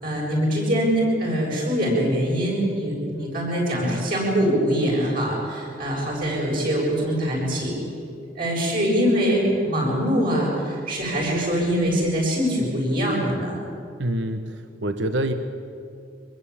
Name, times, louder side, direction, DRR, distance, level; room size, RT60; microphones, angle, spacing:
voice 1, 0.0-7.7 8.3-13.6, equal, 50° right, -4 dB, 7.7 m, -23 dB
voice 2, 14.0-15.3, right 1 dB, 80° right, 8 dB, 1.1 m, -26 dB
23.5 x 22.0 x 8.6 m, 2.4 s
head